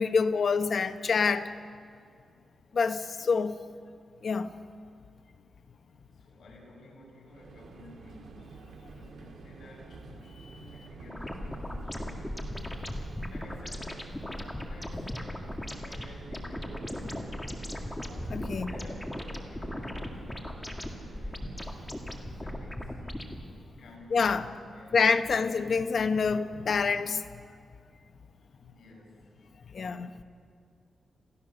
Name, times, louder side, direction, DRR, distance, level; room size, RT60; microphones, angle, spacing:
voice 1, 0.0-1.5 2.7-3.6 4.2-4.5 18.3-18.7 24.1-24.5 24.9-27.2 29.7-30.2, left 5 dB, 50° left, 9 dB, 0.9 m, -26 dB
voice 2, 6.1-8.5 8.9-10.0 10.7-12.5 13.3-14.1 14.6-15.3 15.6-17.8 18.5-21.6 22.4-23.1 23.7-25.1 28.6-29.4, left 2 dB, 70° left, -1 dB, 7.3 m, -52 dB
Subway metro underground, 7.3-22.1, right 4 dB, 80° right, 2.2 m, -49 dB
sound 1, 11.1-23.4, left 1 dB, 10° left, 1.8 m, -38 dB
28.0 x 16.0 x 6.7 m, 2.3 s
wide cardioid pair, 150°, 0 cm